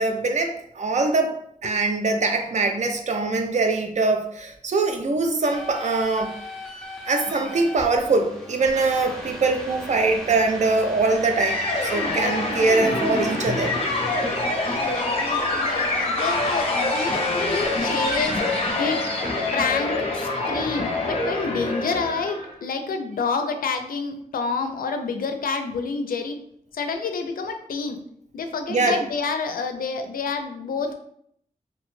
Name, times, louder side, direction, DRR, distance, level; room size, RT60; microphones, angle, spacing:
voice 1, 0.0-1.4 1.6-6.3 7.1-13.7 28.7-29.0, right 3 dB, 55° right, 5 dB, 0.4 m, -23 dB
sound 1, 5.4-18.7, equal, 5° left, 0.6 m, -38 dB
sound 2, 11.4-22.5, left 2 dB, 40° left, 0.6 m, -25 dB
voice 2, 14.6-18.4 18.8-19.0 19.5-26.4 26.7-28.0 28.3-30.9, left 4 dB, 85° left, 6 dB, 0.4 m, -28 dB
2.8 x 2.1 x 3.1 m, 0.69 s
wide cardioid pair, 125°, 15 cm